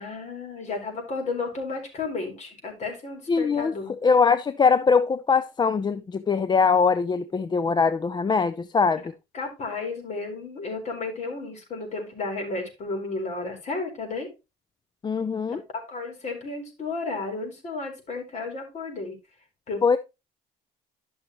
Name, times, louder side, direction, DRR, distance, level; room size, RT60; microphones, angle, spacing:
voice 1, 0.0-3.9 9.3-14.3 15.5-19.2 19.7-20.0, left 3 dB, 45° left, 4.3 m, -33 dB
voice 2, 3.3-3.7 4.0-9.1 15.0-15.6 19.8-20.0, left 5 dB, 25° left, 0.5 m, -22 dB
12.0 x 6.3 x 3.0 m
cardioid pair, 110°, 17 cm